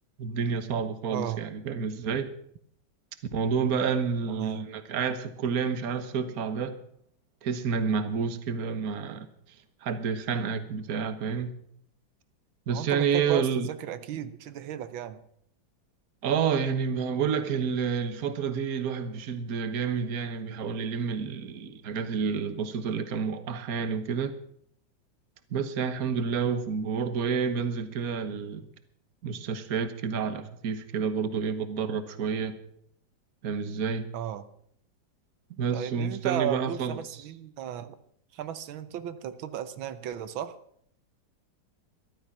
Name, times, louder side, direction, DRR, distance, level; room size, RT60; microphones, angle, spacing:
voice 1, 0.2-2.3 3.3-6.8 7.4-9.3 9.8-11.5 12.7-13.7 16.2-24.4 25.5-28.7 29.2-32.6 33.4-34.1 35.6-37.0, right 6 dB, 50° right, 1.6 m, -29 dB
voice 2, 1.1-1.4 4.3-4.7 12.7-15.2 34.1-34.4 35.7-37.9 38.3-40.6, right 10 dB, 85° right, 1.7 m, -35 dB
14.5 x 12.5 x 6.0 m
omnidirectional pair, 2.1 m